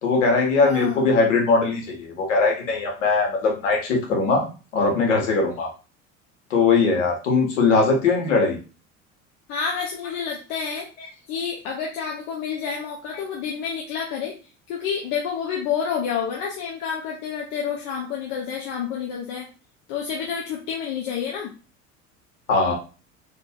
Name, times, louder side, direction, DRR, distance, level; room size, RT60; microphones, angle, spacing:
voice 1, 0.0-4.5 4.7-5.7 6.5-8.6 22.5-22.7, left 4 dB, 70° left, 0 dB, 1.4 m, -20 dB
voice 2, 0.6-1.1 9.5-10.9 11.3-14.4 14.7-19.5 19.9-21.5, left 7 dB, 50° left, 0 dB, 0.8 m, -29 dB
4.3 x 3.0 x 2.3 m, 0.33 s
figure-of-eight pair, 70°, 39 cm